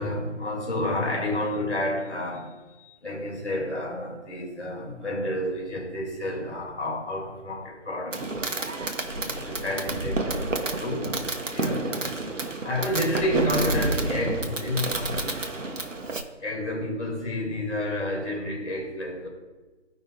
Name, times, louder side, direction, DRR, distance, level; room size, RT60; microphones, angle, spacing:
voice 1, 0.0-8.5 9.1-15.2 16.4-19.3, left 1 dB, 70° left, -2 dB, 2.4 m, -30 dB
Fireworks, 8.1-16.2, right 2 dB, 85° right, 1.0 m, -29 dB
14.0 x 5.3 x 2.3 m, 1.2 s
figure-of-eight pair, 155°, 37 cm